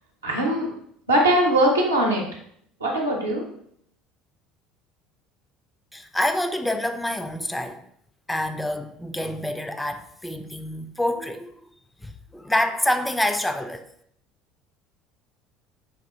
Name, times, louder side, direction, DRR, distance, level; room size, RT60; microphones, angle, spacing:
voice 1, 0.2-0.7 1.1-2.2 2.8-3.4, right 1 dB, 90° right, 0.7 m, -21 dB
voice 2, 5.9-7.8 8.3-11.5 12.0-13.9, left 1 dB, 5° left, 0.3 m, -27 dB
3.4 x 2.4 x 2.9 m
figure-of-eight pair, 65°, 0 cm